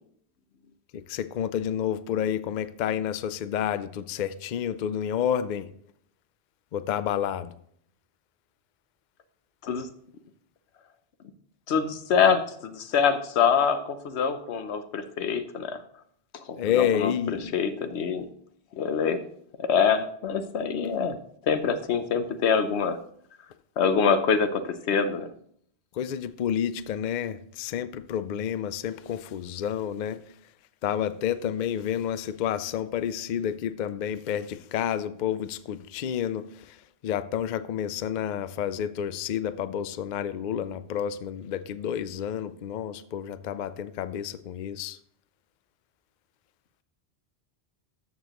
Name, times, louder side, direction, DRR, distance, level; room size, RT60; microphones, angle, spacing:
voice 1, 0.9-5.7 6.7-7.5 16.6-17.6 25.9-30.2 30.8-45.0, left 9 dB, 55° left, 0.5 m, -30 dB
voice 2, 11.7-15.8 16.5-17.1 17.5-18.3 18.8-19.2 19.6-21.2 21.5-23.0 23.8-25.3, left 6 dB, 90° left, 1.0 m, -25 dB
13.0 x 6.9 x 2.9 m
omnidirectional pair, 1.1 m